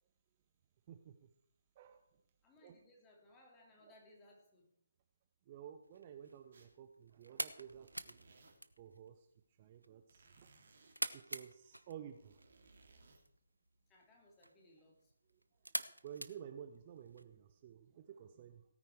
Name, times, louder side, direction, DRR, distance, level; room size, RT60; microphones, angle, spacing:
voice 1, 0.9-1.3 1.8-2.0 2.6-2.8 3.8-4.0 5.5-8.2 8.8-9.3 9.6-10.6 11.1-12.4 16.0-18.6, right 9 dB, 30° right, 8 dB, 0.8 m, -53 dB
voice 2, 2.4-4.7 13.9-15.1, left 1 dB, 15° left, -1 dB, 3.2 m, -65 dB
sound 1, 5.8-17.2, right 1 dB, 85° right, 0.9 m, -48 dB
sound 2, 6.5-6.9 7.3-8.8 10.1-11.0 12.0-13.2, right 3 dB, 50° right, 3.0 m, -65 dB
17.5 x 9.5 x 4.7 m, 0.70 s
figure-of-eight pair, 145°, 0 cm